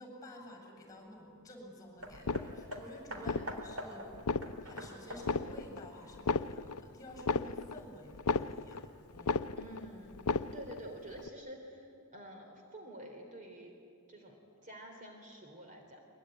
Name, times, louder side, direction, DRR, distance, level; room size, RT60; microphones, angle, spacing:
voice 1, 0.0-4.1 4.6-9.5, left 1 dB, 15° left, 2 dB, 7.6 m, -51 dB
Hammer, 2.0-6.8 7.6-7.7, right 1 dB, 70° right, 3.5 m, -46 dB
sound 1, 2.1-2.8 3.2-3.8 4.1-4.9 5.2-5.9 6.1-8.9 9.2-9.9 10.1-10.8 11.2-11.3, left 4 dB, 85° left, 0.6 m, -35 dB
voice 2, 3.2-3.6 9.6-13.7 14.1-16.0, right 1 dB, 35° right, 3 dB, 3.2 m, -49 dB
23.0 x 23.0 x 9.9 m, 2.4 s
head